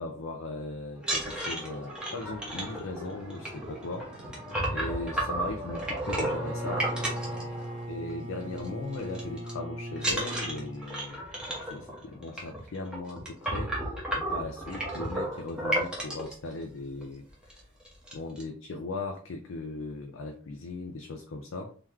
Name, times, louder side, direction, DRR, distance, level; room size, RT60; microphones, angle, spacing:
voice 1, 0.0-4.1 4.7-6.9 7.9-11.2 11.6-13.9 14.1-17.7 18.1-21.7, left 2 dB, 60° left, 4 dB, 0.5 m, -38 dB
sound 1, 1.0-8.1 8.4-8.7 8.9-9.5 10.0-16.3 17.0-17.1 17.4-17.6 17.8-18.4, right 1 dB, 5° right, 1.0 m, -33 dB
Bowed string instrument, 6.1-10.9, right 1 dB, 30° right, 1.2 m, -38 dB
3.8 x 3.0 x 3.1 m, 0.42 s
head